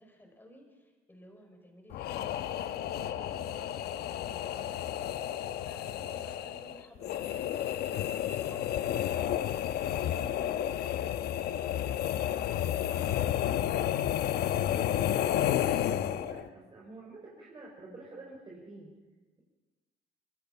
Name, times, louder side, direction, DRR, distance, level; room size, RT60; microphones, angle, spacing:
voice 1, 0.0-5.2 5.6-7.6, equal, 10° left, 3 dB, 5.6 m, -55 dB
sound 1, 1.9-16.5, left 11 dB, 70° left, 1.0 m, -31 dB
voice 2, 14.4-15.2 15.7-18.9, right 2 dB, 30° right, -3 dB, 5.2 m, -48 dB
25.0 x 20.5 x 5.8 m, 1.2 s
cardioid pair, 110°, 17 cm